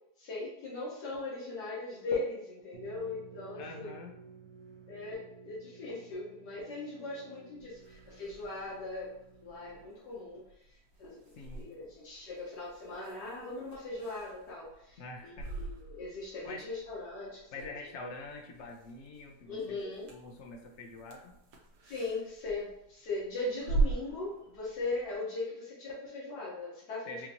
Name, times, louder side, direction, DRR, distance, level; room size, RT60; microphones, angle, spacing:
voice 1, 0.2-3.9 4.9-9.1 9.4-10.4 11.0-11.2 11.5-17.4 19.5-20.1 21.8-27.3, left 3 dB, 90° left, -8 dB, 1.6 m, -39 dB
sound 1, 2.7-10.2, right 5 dB, 55° right, 1.0 m, -54 dB
voice 2, 3.6-4.2 11.3-11.7 15.0-15.5 16.5-16.7 17.5-19.8 20.1-21.4 27.1-27.3, left 3 dB, 60° left, 2 dB, 0.8 m, -45 dB
sound 2, 7.6-25.1, right 3 dB, 80° right, 1.3 m, -41 dB
4.4 x 2.6 x 2.8 m, 0.82 s
omnidirectional pair, 1.7 m